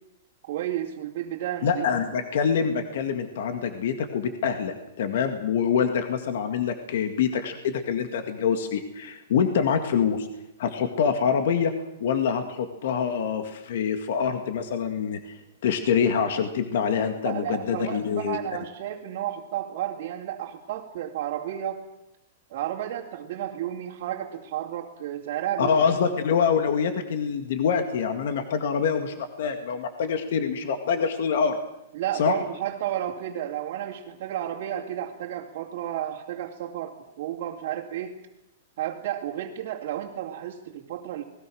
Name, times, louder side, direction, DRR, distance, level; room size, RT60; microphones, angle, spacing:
voice 1, 0.5-1.9 17.2-21.8 22.5-26.0 31.9-38.2 38.8-41.2, right 11 dB, 40° right, -3 dB, 2.5 m, -32 dB
voice 2, 1.6-10.3 10.6-11.7 12.0-15.4 15.6-18.4 25.6-31.6 32.1-32.3, left 7 dB, 55° left, 7 dB, 2.0 m, -25 dB
28.0 x 20.5 x 6.3 m, 0.85 s
supercardioid pair, 180°, 0 cm